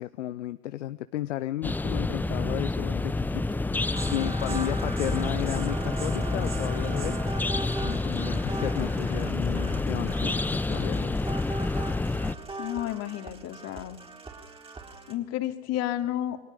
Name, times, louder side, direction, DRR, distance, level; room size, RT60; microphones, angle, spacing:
voice 1, 0.0-7.2 7.8-11.3, left 14 dB, 60° left, 13 dB, 1.0 m, -34 dB
sound 1, 1.6-12.4, left 2 dB, 5° left, 0.9 m, -28 dB
sound 2, 3.9-15.1, right 3 dB, 15° right, 3.9 m, -40 dB
voice 2, 12.6-14.0 15.1-16.4, left 13 dB, 35° left, 8 dB, 2.9 m, -31 dB
29.0 x 23.0 x 7.0 m, 1.0 s
figure-of-eight pair, 95°, 42 cm